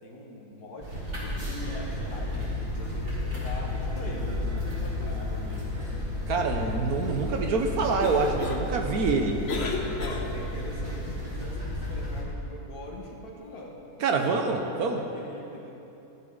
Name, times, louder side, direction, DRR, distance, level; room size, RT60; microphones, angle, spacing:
voice 1, 0.0-5.7 10.0-13.8 14.8-15.7, left 2 dB, 70° left, -2 dB, 2.1 m, -44 dB
sound 1, 0.8-12.2, left 1 dB, 35° right, 3.2 m, -32 dB
voice 2, 6.3-9.4 14.0-15.0, right 4 dB, 70° right, 3 dB, 1.3 m, -26 dB
Cough, 7.8-10.7, left 3 dB, 45° left, 1.1 m, -35 dB
14.5 x 12.0 x 3.9 m, 3.0 s
omnidirectional pair, 1.7 m